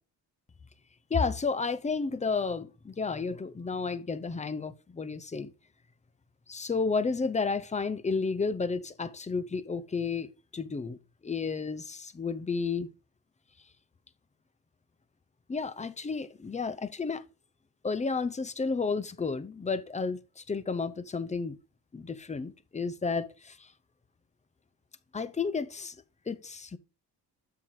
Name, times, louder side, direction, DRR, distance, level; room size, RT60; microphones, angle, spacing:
voice 1, 1.1-5.5 6.5-12.9 15.5-17.2 17.8-21.6 21.9-23.7 25.1-26.0 26.3-26.8, left 4 dB, 15° left, 0.6 m, -32 dB
11.5 x 7.6 x 3.1 m
cardioid pair, 110°, 41 cm